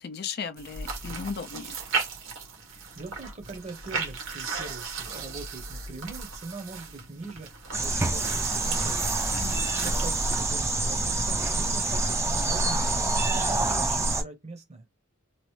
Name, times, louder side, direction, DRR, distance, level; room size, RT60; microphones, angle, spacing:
voice 1, 0.0-1.8 9.3-9.9, left 5 dB, 50° left, 0.5 m, -36 dB
sound 1, 0.6-10.4, right 4 dB, 65° right, 1.4 m, -36 dB
voice 2, 2.7-7.5 7.8-9.1 9.8-14.8, right 3 dB, 30° right, 0.9 m, -42 dB
sound 2, 7.7-14.2, right 2 dB, 15° right, 0.5 m, -26 dB
3.0 x 2.5 x 3.1 m
head